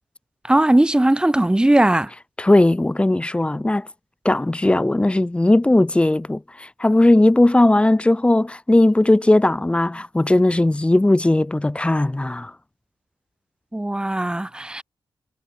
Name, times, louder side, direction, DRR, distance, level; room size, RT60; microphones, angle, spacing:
voice 1, 0.5-2.1 13.7-14.8, right 1 dB, 10° right, 4.3 m, -18 dB
voice 2, 2.4-3.9 4.2-12.5, left 1 dB, 15° left, 3.7 m, -17 dB
cardioid pair, 100°, 8 cm